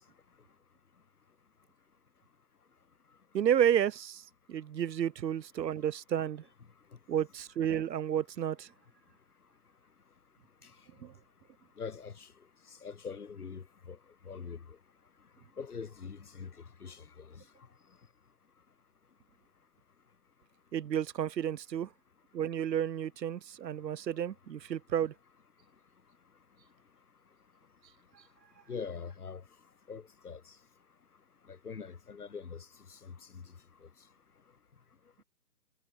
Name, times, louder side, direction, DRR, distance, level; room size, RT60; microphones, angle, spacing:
voice 1, 3.3-4.2 4.5-6.4 7.1-8.7 11.0-11.1 20.7-21.9 22.3-25.1, right 9 dB, 85° right, 0.7 m, -31 dB
voice 2, 11.8-12.3 12.8-14.0 14.2-14.6 15.6-16.5 16.8-17.4 28.7-29.4 29.9-30.4 31.5-32.6 32.9-33.4, left 5 dB, 65° left, 3.3 m, -43 dB
hypercardioid pair, 160°, 49 cm